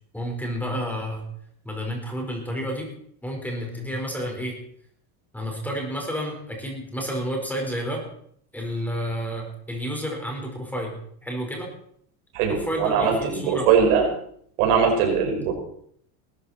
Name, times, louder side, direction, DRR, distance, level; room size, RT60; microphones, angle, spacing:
voice 1, 0.1-1.2 1.6-2.9 3.2-4.6 5.3-8.0 8.5-10.9 11.2-11.7 12.5-13.7, equal, 5° left, 1 dB, 4.9 m, -30 dB
voice 2, 12.3-14.0 14.6-15.5, right 6 dB, 80° right, 1 dB, 5.7 m, -21 dB
19.5 x 13.5 x 4.5 m, 0.65 s
supercardioid pair, 130°, 44 cm